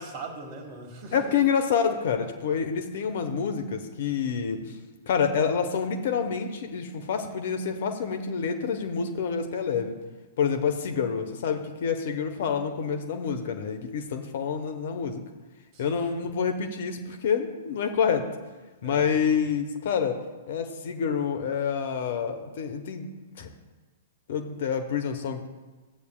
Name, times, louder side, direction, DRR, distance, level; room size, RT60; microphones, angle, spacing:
voice 1, 0.0-1.4 15.7-16.1 18.8-19.1, right 3 dB, 35° right, 4 dB, 1.6 m, -40 dB
voice 2, 1.1-4.8 5.1-10.0 10.4-15.2 15.8-18.3 18.8-23.1 23.4-23.5 24.3-25.5, left 6 dB, 55° left, 6 dB, 0.9 m, -27 dB
14.0 x 8.4 x 2.3 m, 1.2 s
figure-of-eight pair, 110°, 0 cm